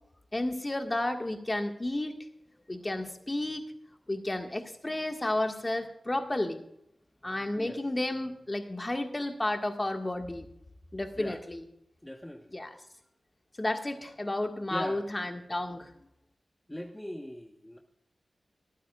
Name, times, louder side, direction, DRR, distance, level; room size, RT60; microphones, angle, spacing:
voice 1, 0.3-2.1 2.7-3.6 4.1-6.6 7.2-10.5 10.9-11.6 12.5-12.7 13.6-15.9, left 1 dB, 30° left, 4 dB, 1.7 m, -32 dB
voice 2, 12.0-12.6 14.7-15.1 16.7-17.8, left 1 dB, 10° left, 2 dB, 1.2 m, -41 dB
27.0 x 9.2 x 2.4 m, 0.76 s
cardioid pair, 45°, 0 cm